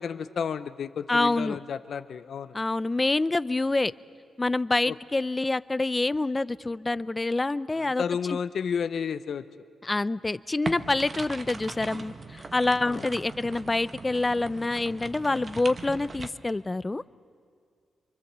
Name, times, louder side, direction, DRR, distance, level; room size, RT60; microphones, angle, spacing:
voice 1, 0.0-2.6 4.9-5.0 7.8-9.4 12.8-13.0, left 7 dB, 70° left, 12 dB, 0.6 m, -32 dB
voice 2, 1.1-1.6 2.5-3.9 4.4-8.0 8.3-8.4 9.8-17.0, left 2 dB, 25° left, 16 dB, 0.5 m, -26 dB
sound 1, 10.6-16.3, right 3 dB, 45° right, 1.2 m, -39 dB
24.5 x 24.0 x 7.4 m, 2.1 s
cardioid pair, 55°, 0 cm